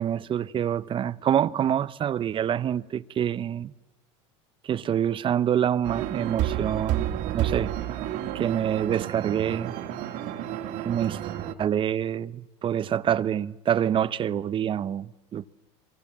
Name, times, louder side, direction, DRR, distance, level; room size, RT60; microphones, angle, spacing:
voice 1, 0.0-3.7 4.6-7.7 8.3-9.7 10.8-11.2 11.6-15.5, right 9 dB, 35° right, 0.9 m, -26 dB
sound 1, 5.8-11.5, right 12 dB, 60° right, 2.1 m, -30 dB
30.0 x 24.0 x 7.4 m
supercardioid pair, 105°, 15 cm